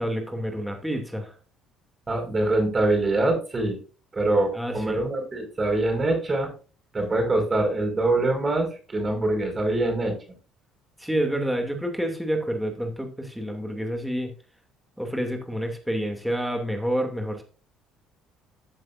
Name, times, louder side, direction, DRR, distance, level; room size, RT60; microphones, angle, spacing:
voice 1, 0.0-1.3 4.5-5.0 11.0-14.3 15.0-17.4, equal, ahead, 3 dB, 2.7 m, -28 dB
voice 2, 2.1-3.8 4.1-6.5 6.9-10.2, right 2 dB, 30° right, 4 dB, 5.5 m, -24 dB
14.5 x 7.5 x 2.7 m, 0.36 s
supercardioid pair, 85°, 0 cm